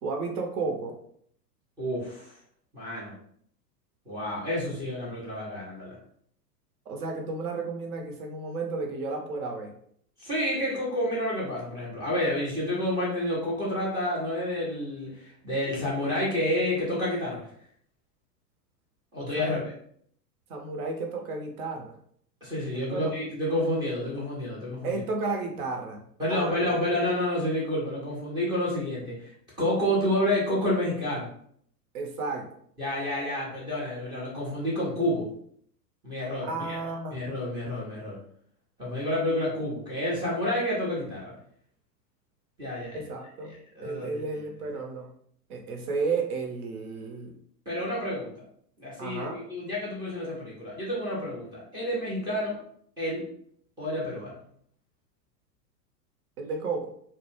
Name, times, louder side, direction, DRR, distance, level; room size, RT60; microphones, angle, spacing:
voice 1, 0.0-0.9 6.9-9.7 19.4-19.6 20.5-22.0 22.9-23.1 24.8-26.6 31.9-32.5 36.5-37.2 42.9-43.5 43.8-45.1 45.5-47.4 49.0-49.4 56.4-56.9, right 4 dB, 60° right, 3 dB, 0.8 m, -32 dB
voice 2, 1.8-2.3 2.7-3.1 4.1-6.0 10.2-17.4 19.1-19.7 22.4-25.0 26.2-29.3 29.6-31.3 32.8-35.3 36.0-36.8 37.1-38.2 38.8-41.3 42.6-43.0 43.8-44.2 47.7-48.3 48.8-52.6 53.0-53.2 53.8-54.4, left 1 dB, 10° right, -5 dB, 0.4 m, -29 dB
2.2 x 2.1 x 3.1 m, 0.64 s
figure-of-eight pair, 100°, 50 cm